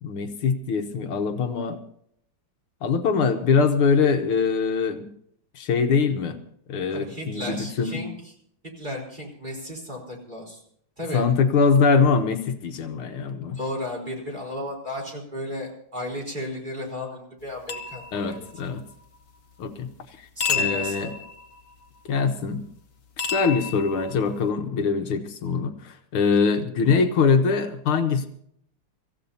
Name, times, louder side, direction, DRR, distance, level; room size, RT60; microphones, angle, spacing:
voice 1, 0.0-1.8 2.8-5.1 5.6-6.4 6.7-8.0 11.1-13.6 18.1-18.8 19.6-19.9 20.2-20.3 20.5-21.1 22.1-22.6 23.2-28.3, left 5 dB, 75° left, 6 dB, 1.9 m, -23 dB
voice 2, 6.9-8.3 8.8-10.6 11.0-11.2 13.5-18.5 20.4-21.1, left 1 dB, 20° right, -2 dB, 4.5 m, -34 dB
sound 1, 17.7-18.9 20.4-21.8 23.2-24.5, left 6 dB, 45° left, 1.4 m, -30 dB
26.0 x 15.0 x 2.8 m, 0.69 s
omnidirectional pair, 2.4 m